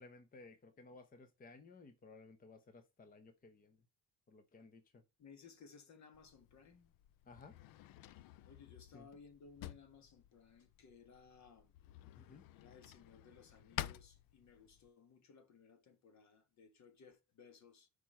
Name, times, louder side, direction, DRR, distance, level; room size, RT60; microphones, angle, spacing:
voice 1, 0.0-3.8 4.3-5.0 7.3-7.6 8.9-9.1 12.2-12.4, left 3 dB, 25° left, 0.8 m, -58 dB
voice 2, 5.2-6.9 8.1-11.7 12.5-17.9, left 5 dB, 50° left, 1.5 m, -61 dB
Drawer open or close, 6.1-14.9, left 13 dB, 70° left, 0.5 m, -51 dB
6.1 x 4.8 x 4.3 m
cardioid pair, 145°, 35 cm